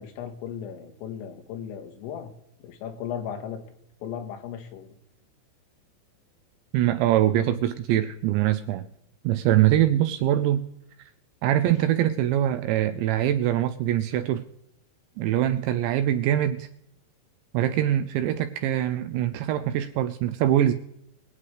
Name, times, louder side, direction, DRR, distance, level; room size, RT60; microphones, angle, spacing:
voice 1, 0.0-2.3 2.6-3.7 4.0-4.9, left 8 dB, 85° left, 5 dB, 4.0 m, -36 dB
voice 2, 6.7-8.8 9.2-10.6 11.4-14.4 15.2-16.7 17.5-20.7, right 12 dB, 85° right, 9 dB, 2.6 m, -23 dB
23.5 x 8.4 x 3.2 m, 0.79 s
omnidirectional pair, 5.7 m